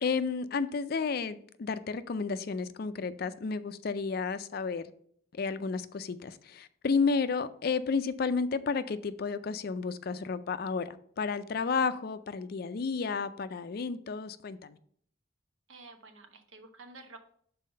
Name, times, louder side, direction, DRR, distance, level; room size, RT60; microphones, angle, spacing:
voice 1, 0.0-4.9 5.3-14.8, left 5 dB, 50° left, 13 dB, 0.4 m, -32 dB
voice 2, 15.7-17.2, right 3 dB, 85° right, 5 dB, 1.1 m, -50 dB
5.7 x 4.1 x 5.4 m, 0.63 s
head